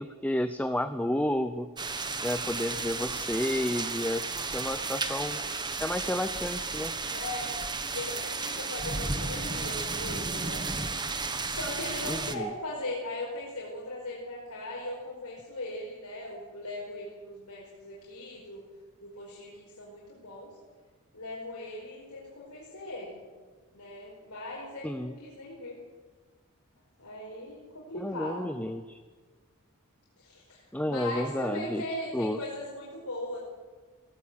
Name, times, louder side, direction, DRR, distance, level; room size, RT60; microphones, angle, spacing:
voice 1, 0.0-1.7 2.2-5.4 5.8-6.9 12.1-12.5 24.8-25.1 28.0-29.0 30.7-31.8 32.1-32.4, left 1 dB, 5° left, 10 dB, 0.7 m, -31 dB
sound 1, 1.8-12.4, right 4 dB, 20° right, 1.3 m, -33 dB
voice 2, 7.1-7.6 7.9-10.6 11.4-18.6 19.0-20.5 21.1-23.2 23.7-25.8 27.0-28.5 30.2-33.4, left 1 dB, 75° left, -5 dB, 4.9 m, -39 dB
17.5 x 17.0 x 8.7 m, 1.4 s
head